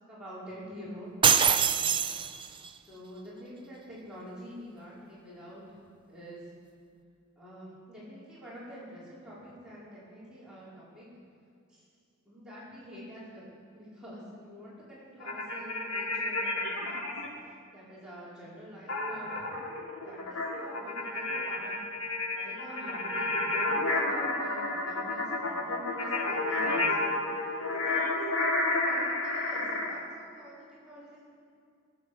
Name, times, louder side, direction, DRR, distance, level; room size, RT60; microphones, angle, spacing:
voice 1, 0.1-1.1 1.6-1.9 2.9-5.8 6.1-6.4 7.4-11.1 11.7-11.8 12.2-17.1 17.7-19.5 20.0-21.7 22.3-27.1 27.7-31.2, equal, 5° right, -10 dB, 4.9 m, -47 dB
sound 1, 1.2-2.7, right 7 dB, 25° right, 0.5 m, -24 dB
sound 2, 15.2-17.3 18.9-30.0, left 2 dB, 85° left, 2.4 m, -31 dB
20.5 x 9.5 x 6.8 m, 2.4 s
head